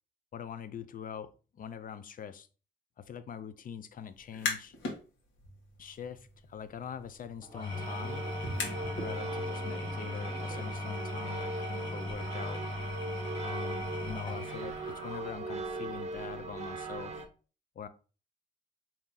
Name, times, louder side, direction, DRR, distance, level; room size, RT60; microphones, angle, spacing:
voice 1, 0.3-2.5 3.0-4.7 5.8-8.3 9.0-12.7 13.4-17.2 17.8-17.9, left 8 dB, 45° left, 0.5 m, -43 dB
sound 1, 4.2-5.0 5.4-9.1, left 3 dB, 75° left, 1.5 m, -39 dB
Engine / Tools, 7.4-15.7, left 2 dB, 25° left, 1.5 m, -39 dB
sound 2, 7.7-17.3, right 3 dB, 35° right, 0.9 m, -40 dB
4.2 x 3.0 x 3.7 m
cardioid pair, 90°, 20 cm